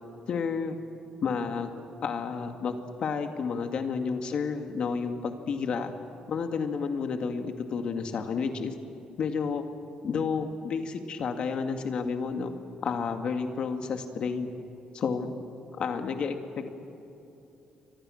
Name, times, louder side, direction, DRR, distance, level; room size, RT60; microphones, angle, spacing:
voice 1, 0.3-0.8 1.2-1.7 2.0-2.7 3.0-5.9 6.3-8.7 9.2-9.6 10.0-12.5 12.8-14.5 14.9-15.3 15.7-16.7, left 5 dB, 45° left, 6 dB, 2.0 m, -30 dB
29.5 x 24.5 x 6.5 m, 2.9 s
cardioid pair, 170°, 2 cm